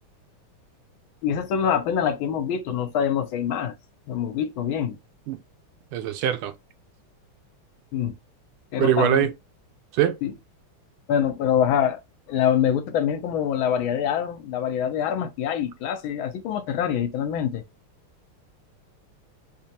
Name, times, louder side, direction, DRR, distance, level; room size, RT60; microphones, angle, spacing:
voice 1, 1.2-3.7 4.1-5.0 7.9-8.1 8.7-9.3 10.2-10.3 11.1-12.0 12.3-17.6, left 9 dB, 75° left, 1.4 m, -25 dB
voice 2, 5.9-6.5 8.8-9.3 9.9-10.2, right 11 dB, 85° right, 1.5 m, -22 dB
5.2 x 2.3 x 2.7 m
omnidirectional pair, 2.4 m